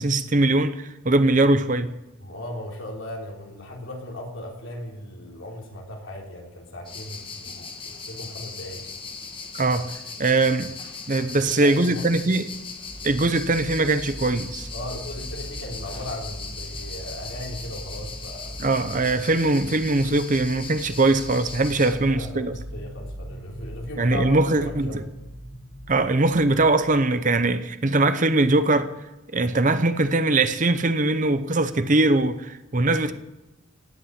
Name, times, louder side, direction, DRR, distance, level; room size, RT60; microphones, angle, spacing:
voice 1, 0.0-1.9 9.5-9.9 10.2-10.7 11.1-12.5 13.0-14.7 18.6-22.5 24.0-24.9 25.9-28.9 29.3-33.1, right 2 dB, 35° right, 0.8 m, -21 dB
voice 2, 2.2-8.8 11.2-12.2 14.7-18.6 21.7-25.0, left 1 dB, 60° left, 3.6 m, -37 dB
sound 1, 6.9-21.9, left 4 dB, 25° left, 1.5 m, -39 dB
sound 2, 12.8-26.8, right 1 dB, 15° right, 3.3 m, -40 dB
18.0 x 8.7 x 8.1 m
head